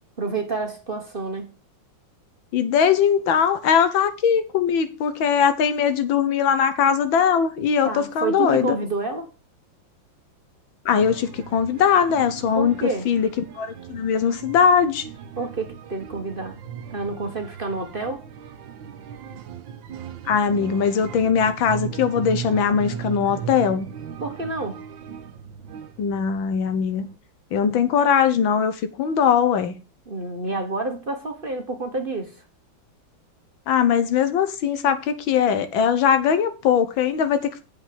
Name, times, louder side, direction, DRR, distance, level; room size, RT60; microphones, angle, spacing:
voice 1, 0.2-1.5 7.8-9.3 12.6-13.1 15.4-16.6 16.9-18.2 24.2-24.8 30.1-32.4, right 3 dB, 35° right, 1.1 m, -29 dB
voice 2, 2.5-8.8 10.9-12.8 13.1-15.1 20.3-23.9 26.0-27.1 27.5-29.8 33.7-37.6, left 7 dB, 85° left, 1.8 m, -20 dB
sound 1, 11.0-27.1, right 8 dB, 80° right, 1.7 m, -38 dB
7.9 x 5.2 x 7.6 m
omnidirectional pair, 2.1 m